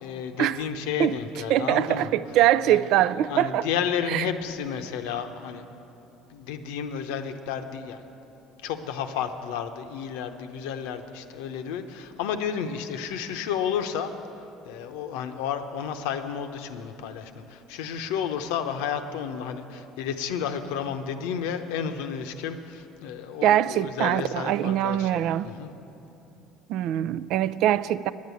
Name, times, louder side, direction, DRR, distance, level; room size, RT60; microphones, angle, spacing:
voice 1, 0.0-2.1 2.7-5.6 6.3-8.1 8.6-14.1 14.7-25.7, left 7 dB, 80° left, 8 dB, 0.8 m, -32 dB
voice 2, 1.5-3.6 4.1-4.3 23.4-25.5 26.7-28.1, right 12 dB, 70° right, 16 dB, 0.3 m, -23 dB
10.0 x 9.4 x 8.3 m, 3.0 s
supercardioid pair, 80°, 0 cm